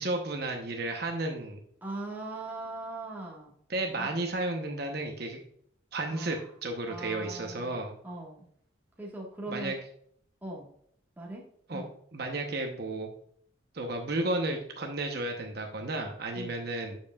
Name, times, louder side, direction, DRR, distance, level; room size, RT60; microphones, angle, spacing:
voice 1, 0.0-1.6 3.7-5.4 5.9-7.9 9.5-9.8 11.7-11.8 12.1-13.1 13.7-17.0, right 2 dB, 50° right, 2 dB, 0.9 m, -33 dB
voice 2, 1.8-3.5 4.0-4.1 6.1-6.5 6.9-7.8 8.0-8.5 9.0-9.7 10.4-10.7 11.2-11.5 11.7-11.9 16.3-16.6, right 2 dB, 10° right, -3 dB, 1.6 m, -40 dB
8.0 x 6.9 x 2.3 m, 0.66 s
head